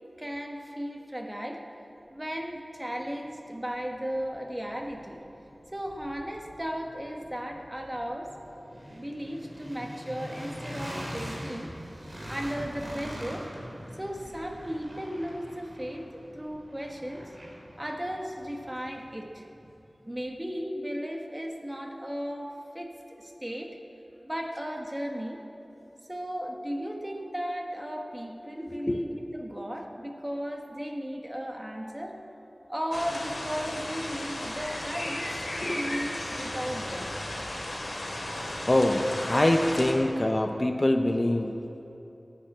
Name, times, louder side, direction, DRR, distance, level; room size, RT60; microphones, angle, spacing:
voice 1, 0.2-1.6 2.1-5.2 5.7-8.6 8.9-11.7 12.3-13.4 14.0-17.3 17.8-19.5 20.0-23.7 24.2-25.4 26.1-32.2 32.7-37.1, equal, 20° right, 1 dB, 1.6 m, -36 dB
sound 1, 3.2-3.3 3.8-19.7, equal, 40° right, 3.4 m, -43 dB
voice 2, 28.7-29.1 35.6-36.0 38.7-41.5, left 1 dB, 35° left, 5 dB, 0.8 m, -25 dB
sound 2, 32.9-39.9, left 1 dB, 60° left, 2.7 m, -35 dB
15.0 x 9.3 x 7.4 m, 2.9 s
wide cardioid pair, 55°, 0 cm